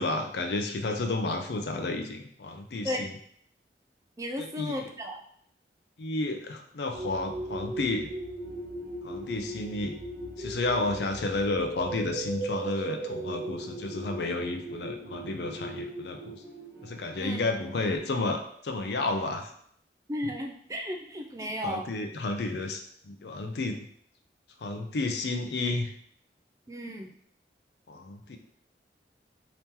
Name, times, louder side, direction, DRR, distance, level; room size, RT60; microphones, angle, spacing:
voice 1, 0.0-3.1 4.4-4.9 6.0-8.1 9.0-9.9 10.4-16.4 16.8-19.5 21.4-23.8 24.6-25.9 27.9-28.4, left 2 dB, 75° left, 5 dB, 0.5 m, -31 dB
voice 2, 4.2-5.2 17.2-17.4 20.1-21.9 26.7-27.1, equal, 20° right, 3 dB, 0.3 m, -34 dB
sound 1, 6.9-18.0, right 2 dB, 85° right, 1.3 m, -38 dB
2.9 x 2.8 x 3.5 m, 0.66 s
head